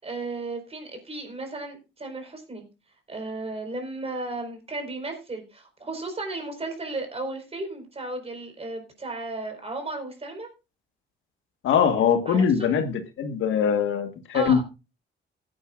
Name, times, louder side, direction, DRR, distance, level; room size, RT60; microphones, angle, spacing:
voice 1, 0.0-2.6 3.1-10.5 12.3-12.7 14.3-14.6, right 2 dB, 30° right, 4.5 m, -34 dB
voice 2, 11.6-14.6, left 7 dB, 80° left, 1.6 m, -22 dB
16.5 x 9.6 x 2.5 m
cardioid pair, 90°, 20 cm